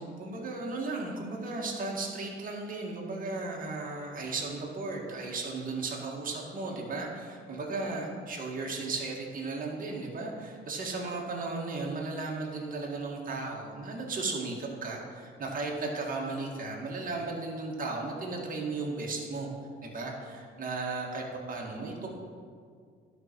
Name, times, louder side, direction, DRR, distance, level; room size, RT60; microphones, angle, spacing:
voice 1, 0.0-19.5 19.8-22.1, right 3 dB, 45° right, -1 dB, 1.8 m, -35 dB
11.0 x 4.8 x 4.6 m, 2.1 s
cardioid pair, 90°, 20 cm